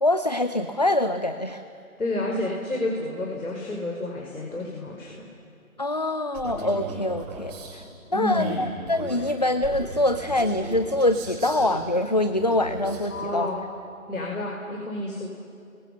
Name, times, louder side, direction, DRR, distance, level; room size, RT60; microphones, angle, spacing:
voice 1, 0.0-1.6 5.8-7.8 8.1-13.5, left 1 dB, 30° left, 10 dB, 0.5 m, -24 dB
voice 2, 2.0-5.2 8.1-8.6 13.1-13.6 14.1-15.3, left 2 dB, 70° left, -1 dB, 4.9 m, -30 dB
Male speech man speaking, 6.3-7.7 8.3-11.8 12.3-13.1, right 2 dB, 15° right, 6.6 m, -37 dB
29.0 x 23.5 x 6.7 m, 2.6 s
figure-of-eight pair, 150°, 43 cm